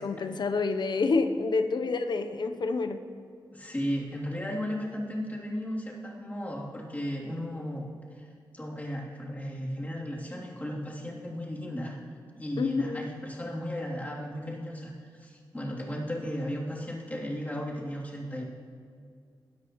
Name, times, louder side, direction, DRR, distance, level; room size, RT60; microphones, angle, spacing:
voice 1, 0.0-3.0 12.6-13.1, left 4 dB, 65° left, 8 dB, 0.9 m, -28 dB
voice 2, 3.5-7.9 8.2-8.3 8.5-12.0 12.4-14.9 15.2-18.4, equal, 20° left, -5 dB, 3.2 m, -35 dB
21.0 x 13.5 x 3.2 m, 2.2 s
cardioid pair, 75°, 8 cm